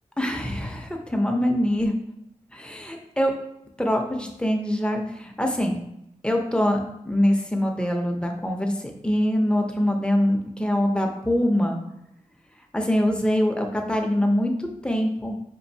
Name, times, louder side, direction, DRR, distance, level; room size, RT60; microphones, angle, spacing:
voice 1, 0.2-1.9 2.5-3.3 3.8-5.8 6.2-6.8 7.1-8.8 9.0-11.8 12.7-15.4, equal, 10° left, 2 dB, 0.7 m, -24 dB
5.2 x 2.5 x 2.7 m, 0.80 s
cardioid pair, 60°, 13 cm